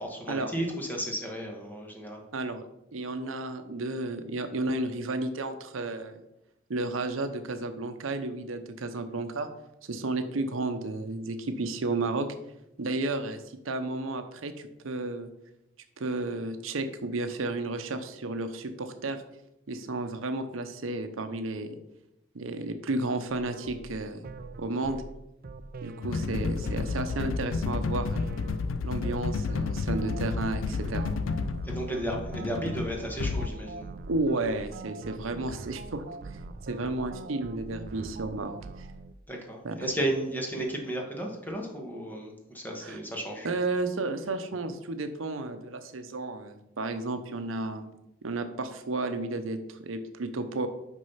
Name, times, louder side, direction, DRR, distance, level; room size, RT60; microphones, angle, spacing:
voice 1, 0.0-2.2 31.6-33.9 39.3-43.5, right 1 dB, 10° left, 0 dB, 1.5 m, -33 dB
voice 2, 2.3-2.6 2.9-6.2 6.7-9.5 9.8-12.3 12.8-15.3 16.0-19.2 19.7-21.7 22.3-24.2 24.6-25.0 25.8-28.3 28.8-31.1 34.1-36.4 36.7-38.9 39.6-39.7 42.8-43.0 43.4-47.8 48.2-50.7, right 2 dB, 75° right, 8 dB, 0.7 m, -32 dB
sound 1, 23.3-39.1, right 3 dB, 50° right, 0.4 m, -43 dB
sound 2, 26.0-33.5, left 4 dB, 70° left, 0.4 m, -31 dB
6.3 x 5.4 x 5.6 m, 0.88 s
head